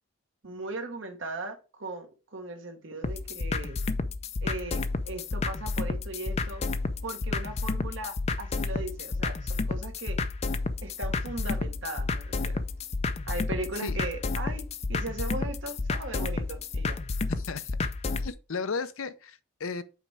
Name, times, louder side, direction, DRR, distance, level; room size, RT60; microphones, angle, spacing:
voice 1, 0.4-3.8 4.4-6.6 7.0-10.2 10.8-12.6 13.3-17.0, right 2 dB, 70° right, 1.5 m, -38 dB
sound 1, 3.0-18.3, left 3 dB, 30° left, 0.4 m, -31 dB
voice 2, 17.4-17.8 18.2-19.8, left 4 dB, 85° left, 0.6 m, -34 dB
5.7 x 4.2 x 4.8 m
head